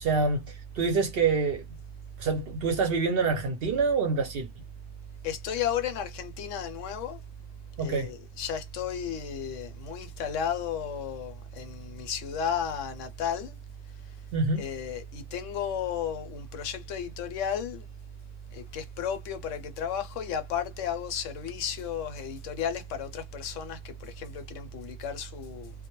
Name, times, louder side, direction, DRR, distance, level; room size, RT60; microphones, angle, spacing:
voice 1, 0.0-1.6 2.2-4.5 7.8-8.1 14.3-14.6, right 4 dB, 60° right, 0.7 m, -26 dB
voice 2, 5.2-7.2 7.8-13.6 14.6-17.8 18.5-25.7, left 7 dB, 75° left, 0.9 m, -33 dB
2.2 x 2.0 x 2.9 m
omnidirectional pair, 1.3 m